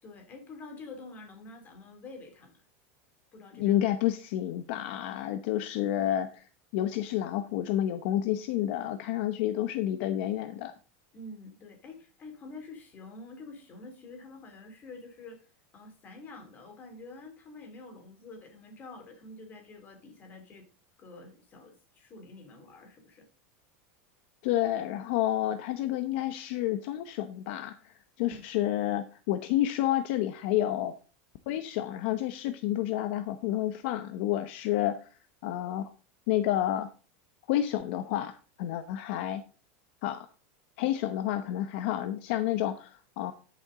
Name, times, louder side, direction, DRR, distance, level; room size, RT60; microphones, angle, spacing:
voice 1, 0.0-2.6 3.3-3.8 11.1-20.6 21.0-23.3 28.2-28.4, left 2 dB, 25° left, 5 dB, 2.6 m, -47 dB
voice 2, 3.5-10.7 24.4-30.9 31.5-35.1 35.4-35.9 36.3-36.9 37.5-39.4 40.0-40.3 40.8-43.3, left 12 dB, 55° left, 10 dB, 0.8 m, -30 dB
13.0 x 7.0 x 3.8 m, 0.37 s
supercardioid pair, 165°, 7 cm